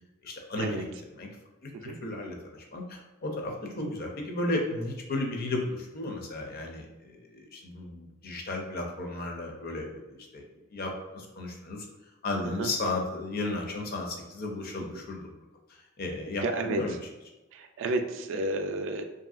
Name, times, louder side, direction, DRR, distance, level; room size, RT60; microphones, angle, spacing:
voice 1, 0.2-0.8 1.1-1.3 1.6-10.5 10.7-11.9 12.2-15.3 15.7-17.0, left 2 dB, 45° left, 1 dB, 0.5 m, -34 dB
voice 2, 16.4-16.8 17.5-19.0, right 2 dB, 65° right, 7 dB, 0.3 m, -31 dB
2.9 x 2.6 x 2.4 m, 1.1 s
head